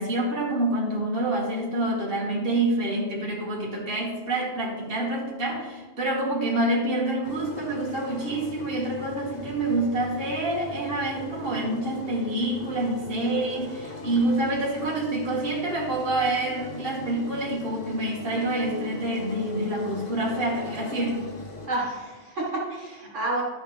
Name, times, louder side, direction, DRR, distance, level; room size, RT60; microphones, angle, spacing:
voice 1, 0.0-21.2, right 1 dB, 50° right, -4 dB, 2.0 m, -27 dB
sound 1, 7.2-21.7, left 3 dB, 35° left, 1.1 m, -40 dB
voice 2, 21.7-23.4, right 2 dB, 70° right, -3 dB, 2.0 m, -29 dB
12.0 x 6.4 x 3.3 m, 1.3 s
omnidirectional pair, 1.3 m